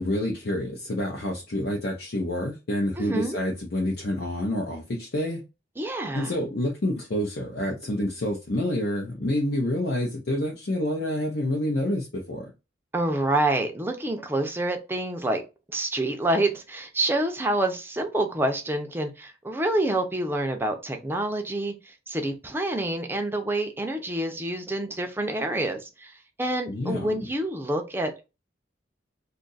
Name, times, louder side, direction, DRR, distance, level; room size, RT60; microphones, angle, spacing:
voice 1, 0.0-5.4 6.1-12.5 26.7-27.1, left 1 dB, 60° left, 0.7 m, -28 dB
voice 2, 3.0-3.4 5.8-6.4 12.9-15.4 15.7-26.1 26.4-28.2, right 1 dB, 10° right, 0.6 m, -27 dB
2.7 x 2.5 x 3.9 m
head